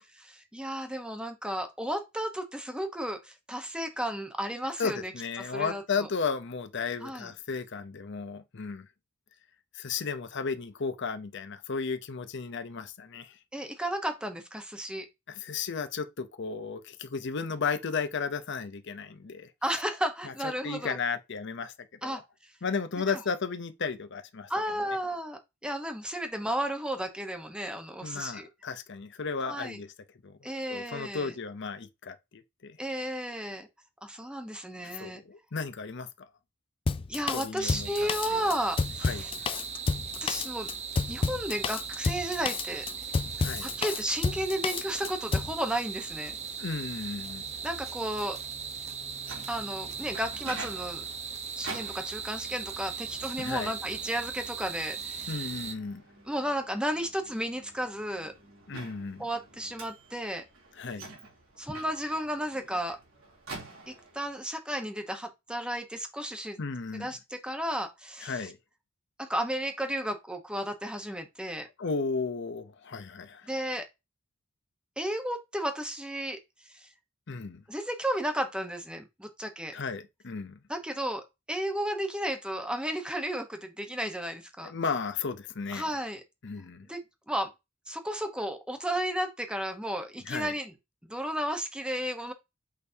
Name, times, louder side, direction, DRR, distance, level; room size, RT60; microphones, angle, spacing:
voice 1, 0.1-5.1 5.4-6.1 7.0-7.3 13.5-15.1 19.6-21.0 22.0-22.2 24.5-28.5 29.4-29.8 30.4-31.3 32.8-33.7 34.0-35.2 37.1-39.3 40.2-40.7 41.1-42.9 43.6-46.4 47.6-48.4 49.5-51.1 51.6-55.4 56.3-58.3 59.2-60.4 61.6-63.0 63.9-66.6 67.0-68.5 69.2-71.7 73.5-73.9 75.0-76.4 76.7-76.9 77.7-79.7 80.7-84.7 85.7-86.2 86.9-87.0 87.3-87.5 87.9-90.7 91.1-92.3, equal, 5° right, 1.1 m, -33 dB
voice 2, 4.8-8.9 9.7-13.4 15.3-19.5 20.2-21.7 22.0-22.2 22.6-24.5 28.0-29.9 30.2-30.4 30.7-32.8 34.9-36.1 37.3-38.5 39.0-39.3 43.4-43.7 46.6-47.5 53.4-53.7 55.3-56.0 58.7-59.3 60.8-61.1 66.6-67.1 68.2-68.6 71.8-73.5 77.3-77.6 79.7-80.6 84.6-85.9 86.4-86.9 90.2-90.5, left 5 dB, 60° left, 0.7 m, -34 dB
Drum kit, 36.9-45.6, left 4 dB, 25° left, 0.3 m, -30 dB
sound 1, 37.6-55.7, right 6 dB, 35° right, 0.8 m, -39 dB
Microwave oven, 48.9-64.3, right 3 dB, 85° right, 3.0 m, -47 dB
6.5 x 5.2 x 2.8 m
head